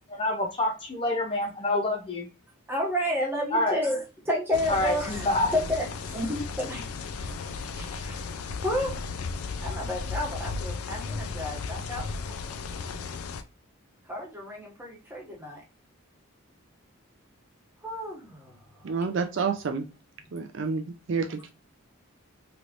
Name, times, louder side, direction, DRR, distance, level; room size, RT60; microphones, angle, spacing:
voice 1, 0.1-2.3 3.5-3.8 4.7-5.5, left 2 dB, 25° left, 0.5 m, -27 dB
voice 2, 2.7-6.8 7.2-7.3 7.7-8.3 8.6-9.0 9.6-12.1 14.0-15.6 17.8-19.0, equal, 10° right, 1.1 m, -31 dB
sound 1, 4.5-13.4, left 4 dB, 85° left, 0.4 m, -35 dB
voice 3, 18.8-19.9 20.3-21.5, right 5 dB, 55° right, 0.4 m, -29 dB
3.1 x 3.0 x 2.5 m
head